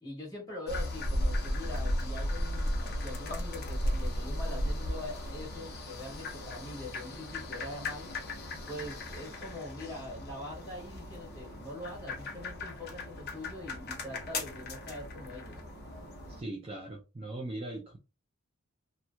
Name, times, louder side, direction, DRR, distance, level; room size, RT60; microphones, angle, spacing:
voice 1, 0.0-8.1 8.7-15.6, left 1 dB, 15° left, 1.5 m, -43 dB
sound 1, 0.7-16.4, left 1 dB, 45° left, 0.8 m, -36 dB
voice 2, 16.4-18.0, right 2 dB, 25° right, 0.4 m, -39 dB
2.9 x 2.6 x 2.3 m
head